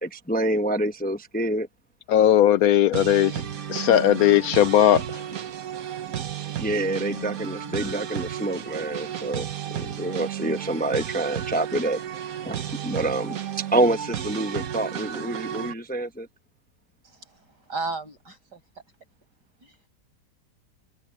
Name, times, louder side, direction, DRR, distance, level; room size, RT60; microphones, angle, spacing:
voice 1, 0.0-1.7 6.6-12.0 12.4-13.4 13.7-16.3, right 1 dB, 5° left, 0.8 m, -27 dB
voice 2, 2.1-3.4 3.7-5.0, left 11 dB, 70° left, 0.9 m, -18 dB
sound 1, 2.9-15.7, right 9 dB, 60° right, 1.5 m, -33 dB
voice 3, 17.0-18.6 19.6-19.8, right 3 dB, 80° right, 7.4 m, -35 dB
omnidirectional pair, 1.8 m